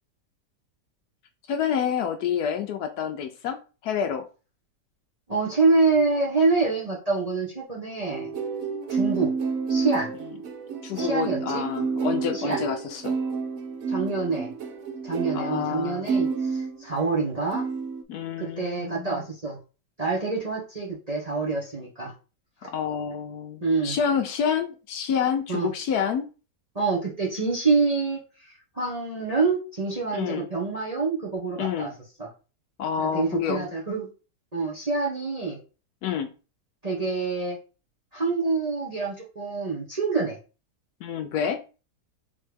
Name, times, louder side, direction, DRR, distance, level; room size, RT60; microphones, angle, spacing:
voice 1, 1.5-4.3 10.8-13.1 15.3-16.1 18.1-19.3 22.7-26.3 30.1-30.5 31.6-31.9 32.8-33.7 36.0-36.3 41.0-41.6, left 7 dB, 70° left, 6 dB, 1.0 m, -28 dB
voice 2, 5.3-8.3 8.9-9.3 9.7-10.1 10.9-11.6 12.3-12.6 13.9-14.5 15.0-17.6 18.4-19.6 20.0-22.1 22.6-22.7 23.6-24.0 25.5-25.7 26.7-31.9 32.2-32.3 33.0-34.1 34.5-35.6 36.8-37.6 38.1-40.4, right 4 dB, 30° right, -4 dB, 0.8 m, -26 dB
sound 1, 8.1-17.2 17.5-18.0, right 5 dB, 65° right, 0.9 m, -30 dB
3.8 x 3.2 x 3.3 m, 0.33 s
omnidirectional pair, 1.9 m